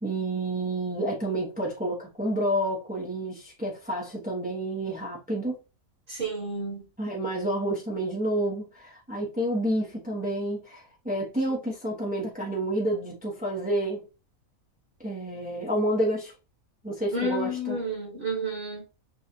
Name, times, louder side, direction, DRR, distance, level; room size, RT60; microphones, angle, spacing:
voice 1, 0.0-5.6 7.0-14.0 15.0-16.3 16.8-17.8, right 1 dB, 5° right, 0.9 m, -29 dB
voice 2, 6.1-6.8 17.1-18.8, right 1 dB, 40° right, 1.8 m, -31 dB
6.2 x 2.4 x 2.8 m
omnidirectional pair, 1.4 m